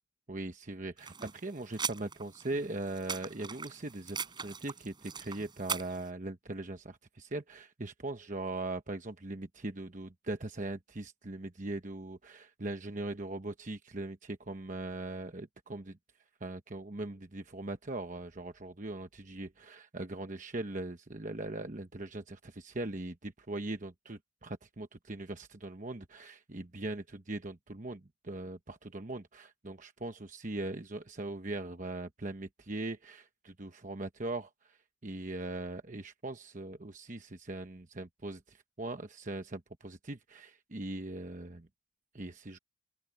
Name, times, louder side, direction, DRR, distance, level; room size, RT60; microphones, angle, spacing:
voice 1, 0.3-16.0 16.4-41.7 42.1-42.6, right 2 dB, 40° right, 1.0 m, -40 dB
sound 1, 1.0-6.1, right 6 dB, 20° right, 6.3 m, -41 dB
open air
head